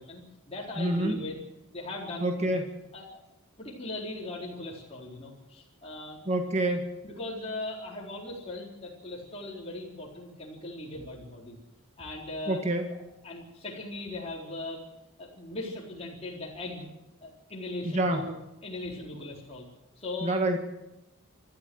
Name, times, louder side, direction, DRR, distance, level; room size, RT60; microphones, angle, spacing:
voice 1, 0.0-1.4 1.7-2.5 2.9-3.2 3.6-6.2 7.0-11.6 12.0-12.6 12.9-14.8 15.2-16.9 17.2-18.3 18.6-19.7 20.0-20.4, left 2 dB, 30° left, -4 dB, 4.3 m, -39 dB
voice 2, 0.8-1.2 2.2-2.7 6.3-6.9 12.5-12.9 17.8-18.2 20.2-20.6, right 1 dB, 30° right, 4 dB, 1.8 m, -27 dB
25.5 x 13.5 x 8.0 m, 0.98 s
head